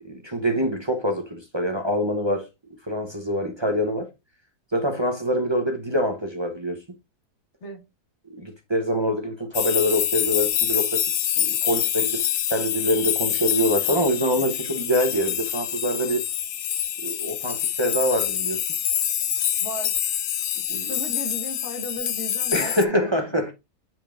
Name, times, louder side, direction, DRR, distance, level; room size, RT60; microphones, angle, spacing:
voice 1, 0.0-2.5 2.9-4.1 4.7-6.8 8.3-11.0 11.4-16.2 17.0-18.6 20.7-20.9 22.5-23.5, equal, 25° right, 0.7 m, -25 dB
sound 1, 9.5-22.9, left 10 dB, 70° left, 1.1 m, -26 dB
voice 2, 19.6-19.9 20.6-23.5, equal, 45° left, 1.9 m, -36 dB
6.8 x 5.8 x 2.5 m
omnidirectional pair, 1.6 m